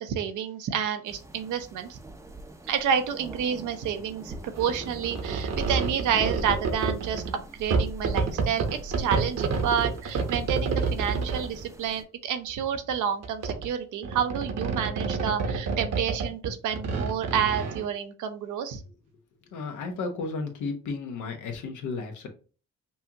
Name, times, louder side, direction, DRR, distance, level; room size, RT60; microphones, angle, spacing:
voice 1, 0.0-2.0 2.7-18.8, right 8 dB, 80° right, 8 dB, 0.8 m, -29 dB
sound 1, 1.1-12.0, right 1 dB, 10° right, 0.6 m, -42 dB
sound 2, 4.6-7.3 7.7-11.6 12.5-12.9 13.2-13.7 14.0-17.8, right 4 dB, 60° right, 1.0 m, -28 dB
voice 2, 19.5-22.3, left 4 dB, 80° left, 4 dB, 1.1 m, -33 dB
5.6 x 2.4 x 2.8 m, 0.36 s
cardioid pair, 90°, 30 cm